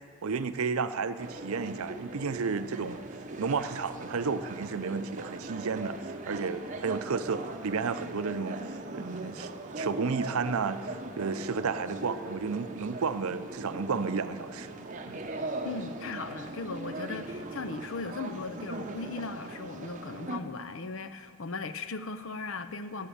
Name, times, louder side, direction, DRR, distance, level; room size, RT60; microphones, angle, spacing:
voice 1, 0.2-3.0 3.4-14.8 15.0-15.2, right 5 dB, 75° right, 12 dB, 0.5 m, -32 dB
sound 1, 1.2-20.4, right 2 dB, 35° right, 0.7 m, -40 dB
voice 2, 15.6-23.1, left 3 dB, 60° left, 10 dB, 0.6 m, -38 dB
14.5 x 7.4 x 8.6 m, 2.7 s
head